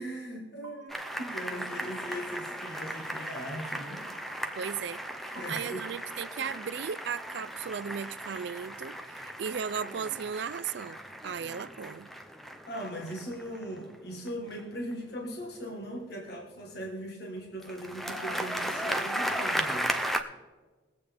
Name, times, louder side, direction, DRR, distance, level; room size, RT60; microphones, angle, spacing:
voice 1, 0.0-4.1 5.4-5.8 12.7-19.9, equal, 55° left, 1.5 m, -39 dB
sound 1, 0.6-7.5, right 3 dB, 15° right, 1.8 m, -55 dB
sound 2, 0.9-14.9 17.6-20.2, equal, ahead, 0.6 m, -36 dB
voice 2, 4.6-12.1, right 7 dB, 60° right, 0.4 m, -36 dB
21.5 x 8.2 x 3.4 m
head